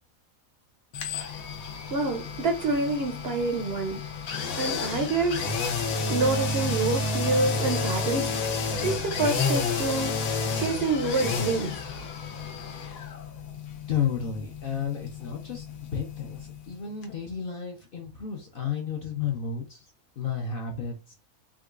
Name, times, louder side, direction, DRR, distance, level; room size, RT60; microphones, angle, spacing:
sound 1, 0.9-16.7 17.0-17.1, left 4 dB, 85° left, 1.2 m, -31 dB
voice 1, 1.9-4.0 4.6-5.5 6.1-11.8, right 3 dB, 60° right, 0.7 m, -27 dB
voice 2, 12.8-13.1 13.9-21.1, left 7 dB, 55° left, 0.7 m, -32 dB
3.7 x 2.3 x 2.3 m
omnidirectional pair, 1.5 m